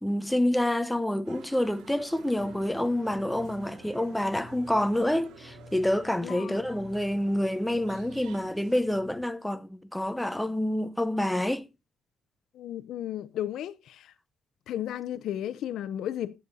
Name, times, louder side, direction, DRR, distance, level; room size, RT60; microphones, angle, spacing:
voice 1, 0.0-11.6, left 1 dB, 5° left, 1.0 m, -28 dB
sound 1, 1.2-8.8, right 7 dB, 85° right, 3.0 m, -52 dB
sound 2, 2.4-9.2, left 2 dB, 35° left, 4.5 m, -52 dB
voice 2, 6.2-6.6 12.5-14.1 14.7-16.3, left 11 dB, 80° left, 0.6 m, -34 dB
13.5 x 9.8 x 2.7 m
cardioid pair, 90°, 0 cm